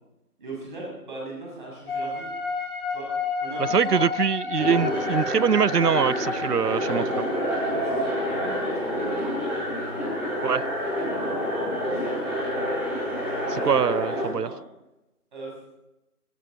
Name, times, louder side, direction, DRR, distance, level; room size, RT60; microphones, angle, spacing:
voice 1, 0.4-2.3 2.9-3.1 3.4-4.0 6.8-7.0 7.7-9.7 11.3-12.9 13.2-14.6 15.3-15.5, right 2 dB, 30° right, -3 dB, 7.4 m, -39 dB
sound 1, 1.9-9.6, left 5 dB, 35° left, 5.1 m, -32 dB
voice 2, 3.7-7.0 10.4-10.6 13.5-14.5, right 7 dB, 80° right, 23 dB, 0.7 m, -23 dB
sound 2, 4.6-14.2, equal, 5° right, 3.5 m, -28 dB
19.5 x 18.5 x 4.0 m, 0.93 s
figure-of-eight pair, 165°, 47 cm